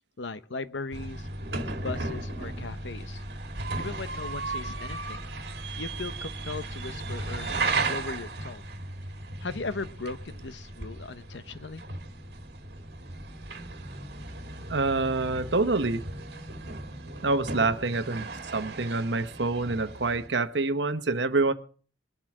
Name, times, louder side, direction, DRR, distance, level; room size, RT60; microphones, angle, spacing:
voice 1, 0.2-1.3 1.7-3.2 3.8-5.3 5.8-7.5 7.9-8.6 9.4-11.8, left 3 dB, 85° left, 13 dB, 0.9 m, -38 dB
sound 1, 0.9-20.3, right 3 dB, 65° right, 2.0 m, -36 dB
voice 2, 14.7-16.1 17.2-21.5, right 3 dB, 80° right, 10 dB, 1.1 m, -26 dB
23.0 x 7.6 x 4.8 m, 0.41 s
head